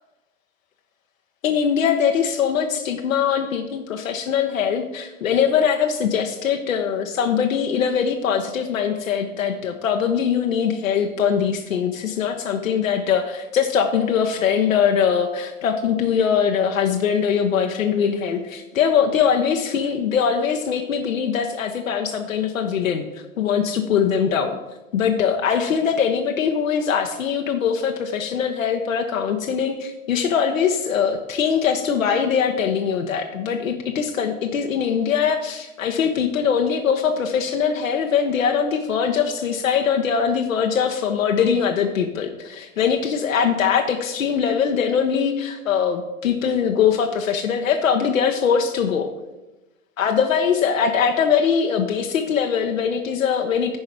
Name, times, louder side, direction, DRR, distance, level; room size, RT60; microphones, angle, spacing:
voice 1, 1.4-24.6 24.9-49.1 50.0-53.8, left 7 dB, 75° left, 3 dB, 0.9 m, -22 dB
9.9 x 4.8 x 5.8 m, 1.0 s
hypercardioid pair, 95°, 40 cm